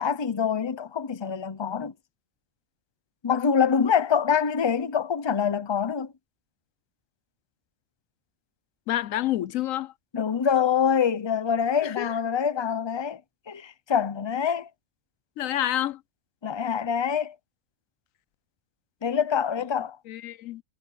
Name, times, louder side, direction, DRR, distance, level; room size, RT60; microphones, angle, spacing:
voice 1, 0.0-1.9 3.2-6.1 10.1-13.2 13.5-14.7 16.4-17.3 19.0-20.0, left 7 dB, 25° left, 0.7 m, -25 dB
voice 2, 8.9-9.9 11.8-12.1 15.4-16.0 20.1-20.6, left 13 dB, 85° left, 1.0 m, -28 dB
omnidirectional pair, 1.4 m